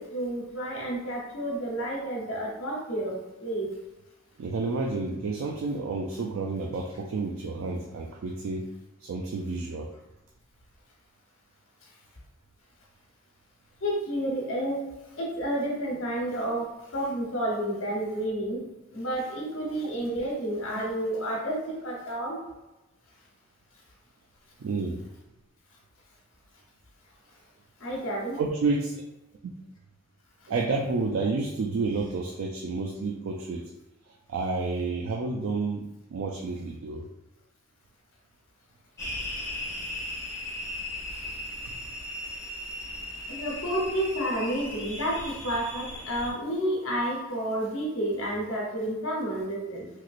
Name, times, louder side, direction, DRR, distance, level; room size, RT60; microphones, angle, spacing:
voice 1, 0.0-3.1 3.4-3.7 13.8-14.8 15.2-18.6 18.9-22.4 27.8-28.4 41.1-41.3 43.3-49.9, right 1 dB, 75° left, -2 dB, 0.9 m, -30 dB
voice 2, 4.4-8.7 9.0-9.9 24.6-25.0 28.4-29.0 29.4-29.5 30.5-33.6 34.1-37.1 41.6-41.7, right 3 dB, 80° right, 1 dB, 0.4 m, -30 dB
sound 1, 39.0-46.3, left 1 dB, 15° left, 0.6 m, -37 dB
3.1 x 2.9 x 2.4 m, 1.0 s
head